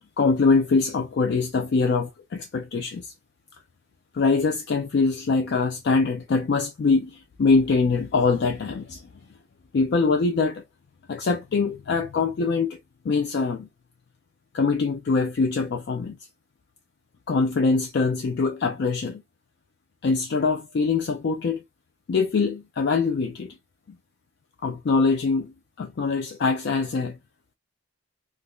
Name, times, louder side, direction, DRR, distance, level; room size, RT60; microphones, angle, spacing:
voice 1, 0.2-3.1 4.1-9.1 9.7-10.6 11.1-12.8 13.0-13.7 14.5-16.2 17.3-19.2 20.0-21.6 22.1-23.6 24.6-27.2, left 4 dB, 55° left, 0.3 m, -23 dB
2.5 x 2.3 x 3.4 m
head